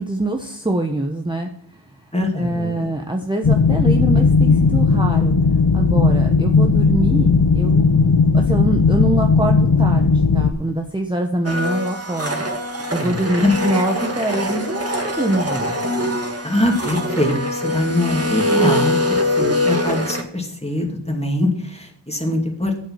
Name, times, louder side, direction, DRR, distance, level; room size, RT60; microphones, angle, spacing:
voice 1, 0.0-2.1 2.3-5.3 5.7-12.4 12.9-15.8, right 1 dB, 10° right, 2 dB, 1.1 m, -24 dB
voice 2, 2.1-2.9 13.0-13.5 16.4-22.8, left 1 dB, 15° left, 1 dB, 2.6 m, -23 dB
sound 1, 3.4-10.5, left 4 dB, 60° left, 0.9 m, -16 dB
Domestic sounds home sounds, 11.4-20.2, left 1 dB, 35° right, 1.7 m, -23 dB
8.5 x 7.9 x 5.8 m, 0.66 s
wide cardioid pair, 50°, 44 cm